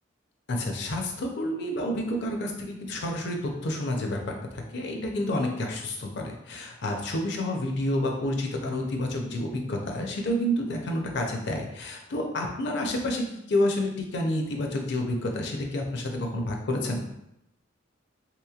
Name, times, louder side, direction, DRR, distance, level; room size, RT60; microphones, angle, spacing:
voice 1, 0.5-17.1, left 1 dB, 60° left, 2 dB, 0.6 m, -29 dB
3.4 x 2.9 x 2.3 m, 0.84 s
head